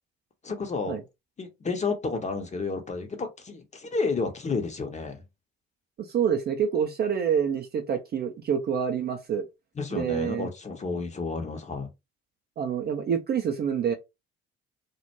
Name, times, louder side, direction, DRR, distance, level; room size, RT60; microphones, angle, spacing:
voice 1, 0.4-1.0 1.4-5.2 9.8-11.9, left 4 dB, 20° left, 0.7 m, -31 dB
voice 2, 6.0-9.5 9.9-10.5 12.6-13.9, right 7 dB, 30° right, 0.5 m, -27 dB
2.2 x 2.1 x 2.9 m
figure-of-eight pair, 50°, 33 cm